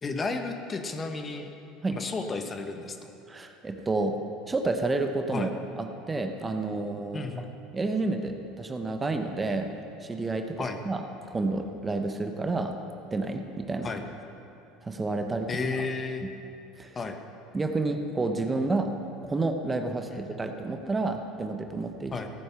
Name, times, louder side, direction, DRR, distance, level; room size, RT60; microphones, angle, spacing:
voice 1, 0.0-1.5 1.9-3.0 5.3-5.5 7.1-7.5 10.6-10.8 13.8-14.0 15.5-16.2 16.9-17.2 20.1-20.4 22.1-22.3, left 3 dB, 30° left, 6 dB, 1.3 m, -33 dB
voice 2, 3.3-4.2 4.5-5.5 5.8-7.2 7.7-9.7 10.0-11.0 11.3-12.8 13.1-13.9 14.8-15.5 16.8-17.0 17.5-18.9 19.2-22.1, right 3 dB, 20° right, 5 dB, 1.0 m, -30 dB
15.5 x 9.4 x 5.9 m, 2.7 s
hypercardioid pair, 80°, 0 cm